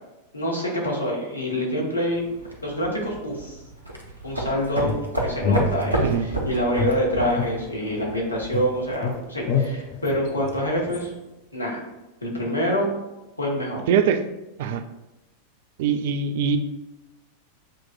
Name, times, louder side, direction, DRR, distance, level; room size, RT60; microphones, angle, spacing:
voice 1, 0.3-2.3 2.6-3.6 4.2-11.1 11.5-11.8 12.2-12.9 13.4-13.9, equal, 80° left, -2 dB, 1.1 m, -26 dB
sound 1, 2.1-8.9, right 1 dB, 85° right, 0.8 m, -31 dB
sound 2, 4.8-6.3 6.8-8.2 8.5-11.0, left 4 dB, 45° left, 0.5 m, -28 dB
voice 2, 13.9-14.2 14.6-14.8 15.8-16.6, right 7 dB, 55° right, 9 dB, 0.3 m, -22 dB
7.4 x 3.0 x 2.3 m, 1.0 s
figure-of-eight pair, 90°, 0 cm